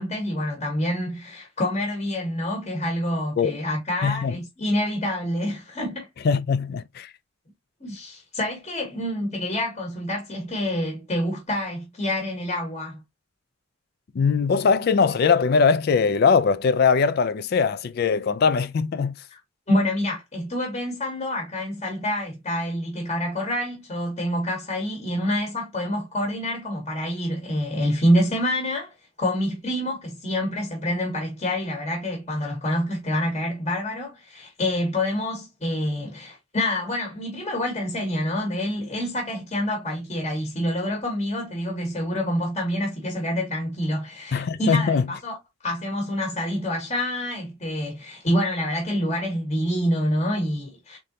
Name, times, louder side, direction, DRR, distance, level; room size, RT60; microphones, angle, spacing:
voice 1, 0.0-6.1 7.8-13.0 19.3-19.4 19.7-45.4 45.6-51.0, left 1 dB, 30° left, 1.3 m, -27 dB
voice 2, 4.0-4.4 6.2-7.1 14.2-19.1 44.3-45.0, left 5 dB, 50° left, 0.3 m, -21 dB
3.8 x 3.5 x 2.8 m
head